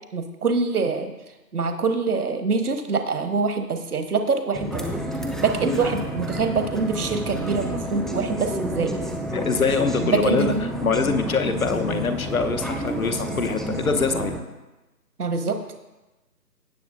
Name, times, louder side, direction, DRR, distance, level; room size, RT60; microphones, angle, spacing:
voice 1, 0.1-1.1 1.5-4.8 5.4-9.1 10.0-10.6 15.2-15.8, right 4 dB, 70° right, 7 dB, 1.2 m, -24 dB
sound 1, 4.5-14.4, right 1 dB, ahead, 0.4 m, -30 dB
voice 2, 9.3-10.5 10.8-14.3, left 4 dB, 60° left, 8 dB, 1.0 m, -24 dB
17.0 x 6.8 x 2.5 m, 1.1 s
figure-of-eight pair, 170°, 47 cm